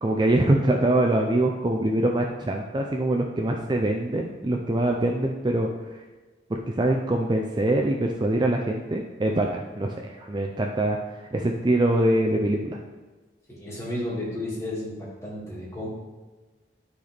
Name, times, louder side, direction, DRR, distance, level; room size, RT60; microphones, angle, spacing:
voice 1, 0.0-5.7 6.5-12.8, right 1 dB, 25° right, 2 dB, 0.4 m, -24 dB
voice 2, 13.5-15.9, left 1 dB, 15° left, -6 dB, 2.2 m, -32 dB
11.5 x 4.0 x 3.4 m, 1.3 s
head